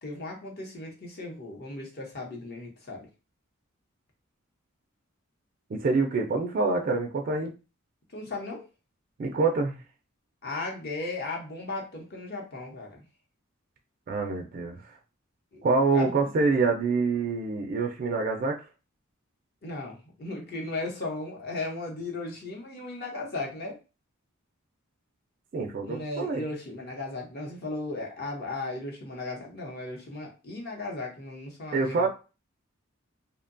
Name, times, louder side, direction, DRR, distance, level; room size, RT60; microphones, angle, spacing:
voice 1, 0.0-3.1 8.1-8.6 10.4-13.0 15.5-15.7 15.9-16.3 19.6-23.8 25.8-32.1, left 2 dB, 50° left, 0 dB, 0.8 m, -36 dB
voice 2, 5.7-7.5 9.2-9.8 14.1-14.8 15.6-18.6 25.5-26.4 31.7-32.1, right 3 dB, 45° right, 2 dB, 0.3 m, -26 dB
2.7 x 2.1 x 2.5 m, 0.31 s
head